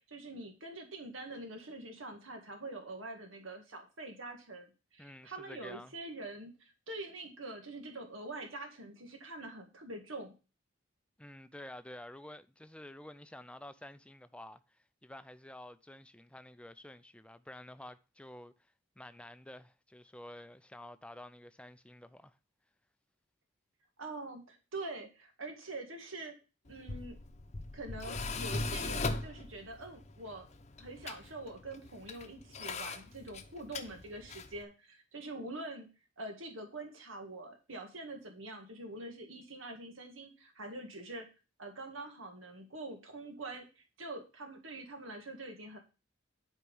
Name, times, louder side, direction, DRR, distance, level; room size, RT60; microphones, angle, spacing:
voice 1, 0.0-10.3 24.0-26.4 26.7-27.2 27.7-30.5 30.8-35.9 36.2-41.3 41.6-45.8, right 2 dB, 85° right, 1.9 m, -45 dB
voice 2, 5.0-5.9 11.2-18.5 19.0-22.4, left 1 dB, 5° left, 0.5 m, -50 dB
Tools, 26.7-34.6, left 3 dB, 35° left, 0.8 m, -40 dB
11.5 x 4.6 x 5.4 m
head